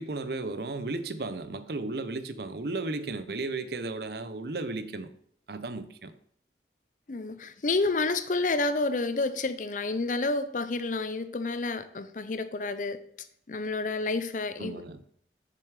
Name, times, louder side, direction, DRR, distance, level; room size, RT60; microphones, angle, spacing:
voice 1, 0.0-5.1 5.5-6.1 14.6-15.0, right 3 dB, 60° right, 0.7 m, -34 dB
voice 2, 7.1-13.0 13.5-14.8, left 3 dB, 45° left, 0.6 m, -29 dB
6.9 x 6.8 x 4.8 m
head